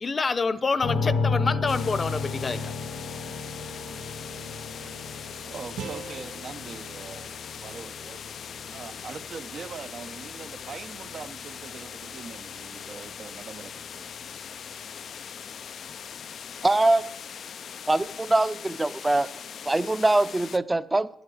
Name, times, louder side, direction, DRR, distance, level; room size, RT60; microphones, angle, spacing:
voice 1, 0.0-2.8, left 4 dB, 40° left, 16 dB, 0.7 m, -27 dB
sound 1, 0.8-14.6, left 4 dB, 85° left, 1.4 m, -35 dB
sound 2, 1.7-20.6, left 7 dB, 70° left, 0.3 m, -41 dB
voice 2, 5.1-8.3 8.7-14.1, right 6 dB, 60° right, 11 dB, 0.7 m, -42 dB
sound 3, 5.8-8.9, right 5 dB, 85° right, 1.2 m, -44 dB
voice 3, 16.6-17.1 17.9-19.3 19.7-21.1, right 2 dB, 20° right, 15 dB, 0.6 m, -23 dB
10.5 x 7.9 x 7.8 m, 0.83 s
cardioid pair, 65°, 0 cm